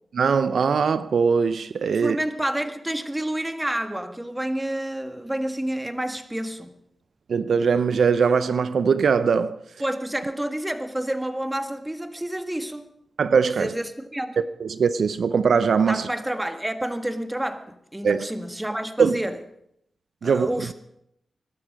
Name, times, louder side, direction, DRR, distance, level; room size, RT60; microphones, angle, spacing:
voice 1, 0.1-2.2 7.3-9.6 13.2-13.7 14.6-16.1 18.0-18.2 19.0-19.2 20.2-20.5, right 5 dB, 75° right, 0.5 m, -21 dB
voice 2, 1.9-6.7 9.8-12.9 13.6-14.4 15.9-19.4 20.2-20.7, right 1 dB, 10° right, 1.6 m, -29 dB
21.5 x 12.5 x 5.1 m
cardioid pair, 65°, 0 cm